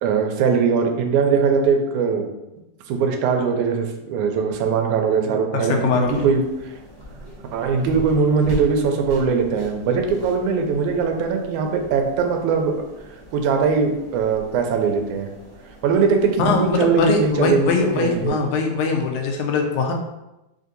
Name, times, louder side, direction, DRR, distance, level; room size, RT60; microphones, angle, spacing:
voice 1, 0.0-2.3 2.9-6.7 7.5-12.7 13.3-15.3 15.8-18.4, right 5 dB, 90° right, 4 dB, 2.0 m, -21 dB
voice 2, 5.3-6.3 16.4-19.9, left 4 dB, 80° left, 3 dB, 1.9 m, -22 dB
sound 1, 6.0-18.3, right 1 dB, 45° right, 0.7 m, -38 dB
4.9 x 2.7 x 3.9 m, 0.96 s
omnidirectional pair, 3.4 m